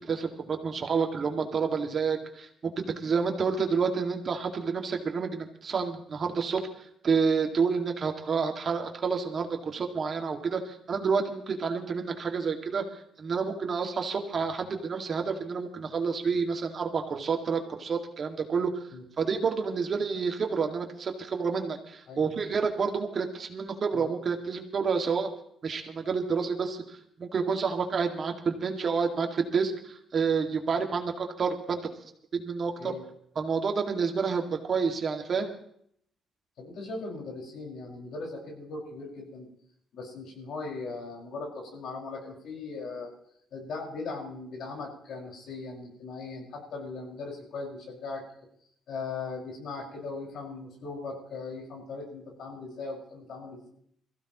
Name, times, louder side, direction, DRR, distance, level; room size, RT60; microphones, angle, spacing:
voice 1, 0.0-6.7 7.0-12.8 13.2-18.8 19.2-25.3 25.6-31.8 32.3-33.0 33.4-35.5, right 5 dB, 45° right, 4 dB, 2.0 m, -29 dB
voice 2, 22.1-22.4 23.9-24.1 32.8-33.0 36.6-39.5 39.9-43.1 43.5-48.2 48.9-53.7, left 3 dB, 70° left, -1 dB, 5.4 m, -39 dB
22.0 x 15.5 x 3.0 m, 0.67 s
cardioid pair, 90°, 0 cm